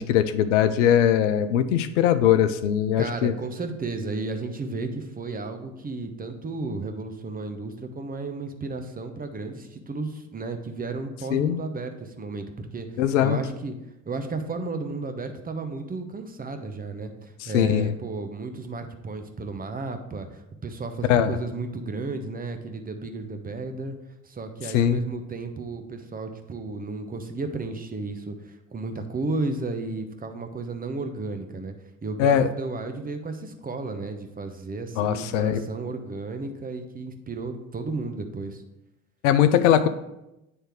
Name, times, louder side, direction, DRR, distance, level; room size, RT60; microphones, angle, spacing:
voice 1, 0.0-3.3 11.3-11.6 13.0-13.4 17.4-17.9 21.1-21.4 24.7-25.0 32.2-32.5 35.0-35.6 39.2-39.9, left 10 dB, 75° left, 12 dB, 0.5 m, -21 dB
voice 2, 3.0-13.7 14.1-24.0 24.2-31.7 32.0-38.6, right 3 dB, 25° right, 7 dB, 0.9 m, -33 dB
9.0 x 3.3 x 4.5 m, 0.89 s
figure-of-eight pair, 60°, 37 cm